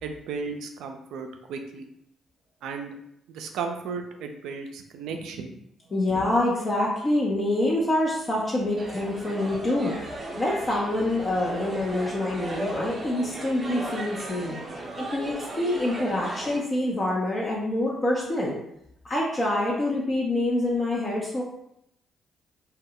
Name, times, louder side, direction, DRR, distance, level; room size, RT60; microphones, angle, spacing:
voice 1, 0.0-1.9 2.6-2.9 3.3-5.5, right 5 dB, 75° right, 5 dB, 0.3 m, -35 dB
voice 2, 5.9-14.6 15.0-18.5 19.0-21.4, left 1 dB, 35° left, -4 dB, 0.6 m, -26 dB
sound 1, 8.8-16.6, right 1 dB, 35° right, 0.6 m, -36 dB
2.2 x 2.0 x 3.7 m, 0.78 s
hypercardioid pair, 50°, 0 cm